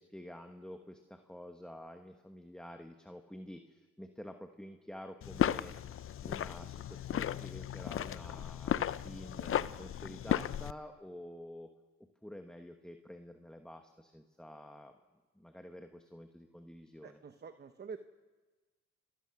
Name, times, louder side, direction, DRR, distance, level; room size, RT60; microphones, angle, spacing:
voice 1, 0.0-5.7 6.2-11.7 12.0-15.0 15.3-17.2, equal, 5° left, 5 dB, 1.2 m, -49 dB
sound 1, 5.2-10.7, left 10 dB, 45° left, 0.6 m, -35 dB
voice 2, 17.0-18.0, right 5 dB, 35° right, 9 dB, 1.0 m, -46 dB
28.5 x 15.5 x 6.0 m, 1.3 s
cardioid pair, 90°, 30 cm